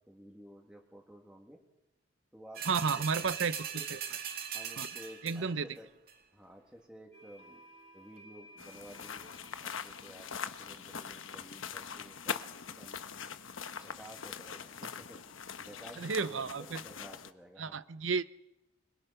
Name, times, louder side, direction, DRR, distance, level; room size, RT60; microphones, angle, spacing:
voice 1, 0.1-1.6 2.3-3.4 3.7-3.8 4.5-5.9 6.3-7.6 7.9-12.4 12.7-13.1 13.7-17.8, equal, 5° right, 0 dB, 2.1 m, -53 dB
sound 1, 2.6-5.6 6.1-6.2, right 8 dB, 50° right, 2.3 m, -40 dB
voice 2, 2.7-4.0 4.8-4.9 5.2-5.8 16.0-16.8 17.6-18.2, right 5 dB, 75° right, 14 dB, 0.7 m, -32 dB
sound 2, 7.1-12.4, equal, 30° right, 2.4 m, -58 dB
sound 3, 8.6-17.3, left 6 dB, 90° left, 1.1 m, -42 dB
25.5 x 22.0 x 5.8 m, 0.93 s
head